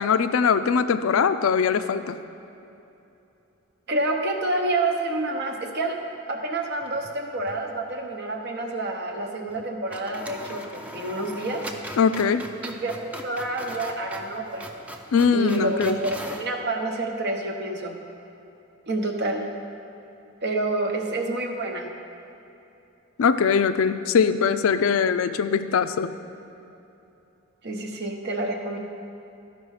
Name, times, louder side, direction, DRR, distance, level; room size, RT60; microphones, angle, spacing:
voice 1, 0.0-2.2 12.0-12.5 15.1-16.0 23.2-26.1, left 6 dB, 75° left, 11 dB, 0.4 m, -21 dB
voice 2, 3.9-6.0 6.3-12.0 12.6-14.7 15.3-18.0 18.9-19.5 20.4-21.9 27.6-28.8, right 2 dB, 50° right, 3 dB, 0.9 m, -28 dB
sound 1, 6.8-7.6 7.9-8.0 9.5-9.6 9.9-16.5, equal, 5° right, 0.5 m, -40 dB
12.5 x 5.4 x 4.9 m, 2.8 s
head